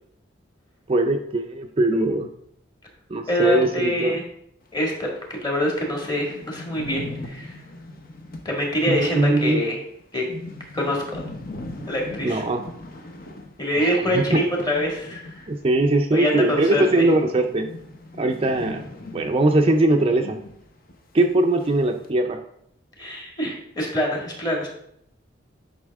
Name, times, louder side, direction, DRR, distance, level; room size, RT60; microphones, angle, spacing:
voice 1, 0.9-2.3 3.1-4.2 8.9-9.6 12.2-12.6 13.8-14.4 15.5-17.7 18.2-18.9 19.1-20.4 21.1-22.4, right 2 dB, 30° right, 4 dB, 0.4 m, -21 dB
voice 2, 3.3-4.2 4.7-7.5 8.5-9.8 10.1-10.2 10.7-11.2 11.9-12.4 13.6-15.2 16.1-16.8 23.0-24.7, left 1 dB, 20° left, -1 dB, 2.0 m, -25 dB
sound 1, 4.9-5.0 5.4-5.5 5.6-15.9 16.1-20.6 20.9-21.0 21.6-22.1, left 1 dB, 50° left, 1.0 m, -40 dB
9.7 x 5.5 x 3.5 m, 0.73 s
head